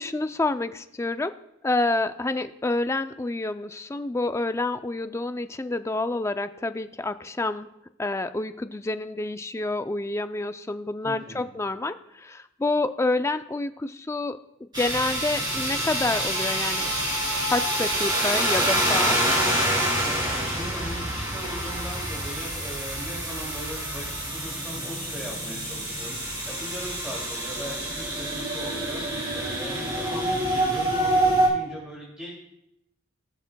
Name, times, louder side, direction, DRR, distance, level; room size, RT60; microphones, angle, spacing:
voice 1, 0.0-1.3 1.6-7.7 8.0-16.9 17.5-19.2, left 2 dB, 15° left, 10 dB, 0.3 m, -28 dB
voice 2, 11.0-11.5 20.3-32.3, equal, 5° right, -7 dB, 2.4 m, -39 dB
sound 1, 14.7-31.5, right 1 dB, 20° right, 3.7 m, -27 dB
19.0 x 7.2 x 2.2 m, 0.83 s
head